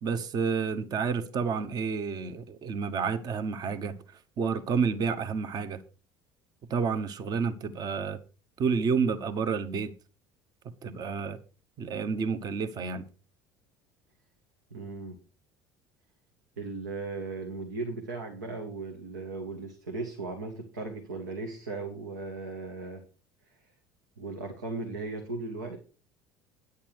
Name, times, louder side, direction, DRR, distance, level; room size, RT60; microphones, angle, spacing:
voice 1, 0.0-4.0 4.4-5.8 6.7-8.2 8.6-9.9 10.8-11.4 11.8-13.0, right 5 dB, 45° right, 1.1 m, -30 dB
voice 2, 14.7-15.2 16.6-23.0 23.5-23.6 24.2-25.8, right 3 dB, 90° right, 1.5 m, -37 dB
9.5 x 8.7 x 4.7 m
hypercardioid pair, 70°, 9 cm